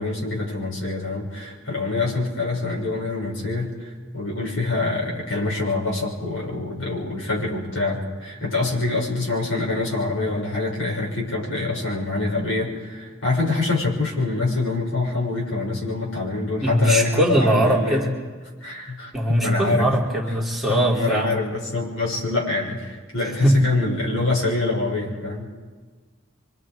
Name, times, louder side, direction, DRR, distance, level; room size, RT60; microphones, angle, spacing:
voice 1, 0.0-18.1 18.6-19.9 20.2-20.3 20.7-25.5, left 3 dB, 70° left, -3 dB, 6.4 m, -25 dB
voice 2, 16.6-18.1 19.1-21.3 23.4-23.6, right 1 dB, ahead, -4 dB, 3.2 m, -20 dB
26.5 x 25.0 x 5.1 m, 1.4 s
head